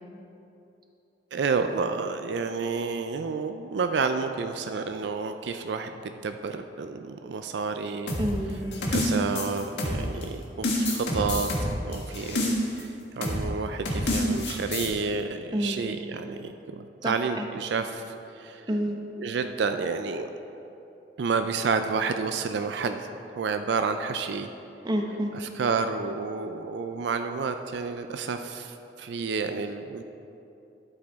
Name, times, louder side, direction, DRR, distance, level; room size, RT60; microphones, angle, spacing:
voice 1, 1.3-8.2 8.9-11.5 11.8-18.7 19.2-20.3 21.2-23.1 23.4-24.5 25.3-30.0, right 5 dB, 75° right, 7 dB, 0.4 m, -30 dB
sound 1, 8.1-10.2 10.6-12.8 13.2-13.5 13.8-14.9, left 1 dB, 80° left, 1.7 m, -27 dB
voice 2, 8.2-8.8 15.5-15.8 17.0-17.5 18.7-19.0 24.8-25.3, equal, 25° right, 2 dB, 0.8 m, -28 dB
12.5 x 7.9 x 3.5 m, 2.9 s
head